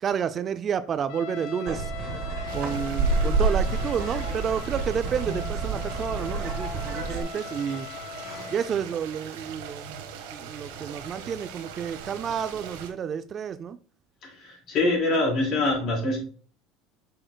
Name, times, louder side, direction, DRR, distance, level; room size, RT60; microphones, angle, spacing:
voice 1, 0.0-2.2 2.5-7.9 8.5-10.0 10.3-13.8, right 7 dB, 30° right, 0.4 m, -30 dB
Trumpet, 1.1-8.8, left 7 dB, 70° left, 1.0 m, -39 dB
sound 1, 1.7-7.2, right 4 dB, 50° right, 2.3 m, -28 dB
sound 2, 2.5-12.9, right 7 dB, 90° right, 1.3 m, -41 dB
voice 2, 14.2-16.2, left 2 dB, 45° left, 3.9 m, -25 dB
8.8 x 6.5 x 2.2 m
supercardioid pair, 135°, 0 cm